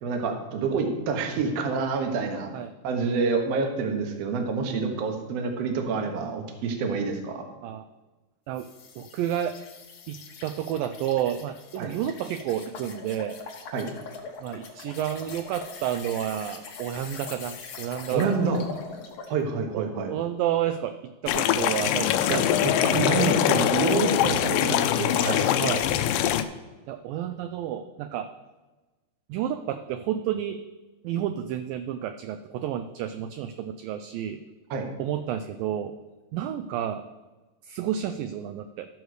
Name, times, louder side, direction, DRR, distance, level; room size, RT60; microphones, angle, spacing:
voice 1, 0.0-2.5 2.8-7.5 11.8-11.9 13.7-13.9 18.1-18.6 19.3-20.1 22.3-25.5 34.7-34.8, right 4 dB, 65° right, 4 dB, 1.6 m, -27 dB
voice 2, 4.6-4.9 7.6-7.9 8.5-8.7 9.0-9.6 10.1-13.4 14.4-18.3 19.7-22.9 24.2-24.4 25.6-25.9 26.9-28.3 29.3-30.6 31.0-34.4 35.0-35.9 36.3-37.0 37.6-38.9, right 10 dB, 85° right, 9 dB, 2.0 m, -30 dB
sound 1, 8.5-19.4, left 4 dB, 65° left, 1.5 m, -42 dB
sound 2, 21.3-26.4, left 11 dB, 85° left, 2.0 m, -23 dB
13.5 x 4.7 x 6.4 m, 1.2 s
omnidirectional pair, 4.5 m